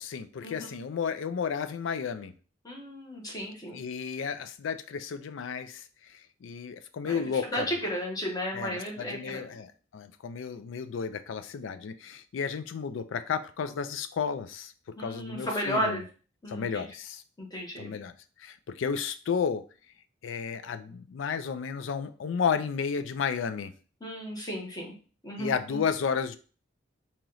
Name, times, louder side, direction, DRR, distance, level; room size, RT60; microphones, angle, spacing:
voice 1, 0.0-2.3 3.7-7.7 8.5-14.7 15.0-16.0 16.5-17.2 17.8-18.1 18.4-19.6 20.2-23.7 25.4-26.4, left 6 dB, 70° left, 12 dB, 0.4 m, -32 dB
voice 2, 2.6-3.8 7.0-7.2 7.5-9.4 15.0-16.0 16.4-16.8 17.4-18.0 24.0-24.9 25.2-25.8, equal, 20° left, -1 dB, 1.0 m, -34 dB
3.0 x 2.9 x 3.8 m, 0.37 s
head